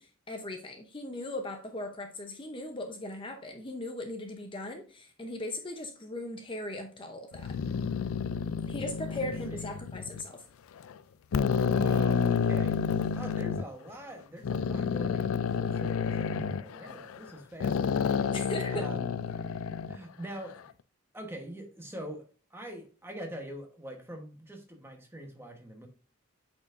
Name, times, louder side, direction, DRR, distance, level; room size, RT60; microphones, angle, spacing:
voice 1, 0.0-7.6 8.7-10.4 18.3-18.9, left 1 dB, 25° left, 0.7 m, -38 dB
sound 1, 7.3-10.2 10.8-10.9 11.3-13.6 14.4-17.3 17.6-20.0, left 6 dB, 85° left, 0.4 m, -29 dB
voice 2, 11.6-12.8 13.1-18.3 18.7-19.1 19.8-20.7 21.1-25.9, right 1 dB, 10° right, 1.1 m, -44 dB
8.5 x 4.5 x 2.5 m
head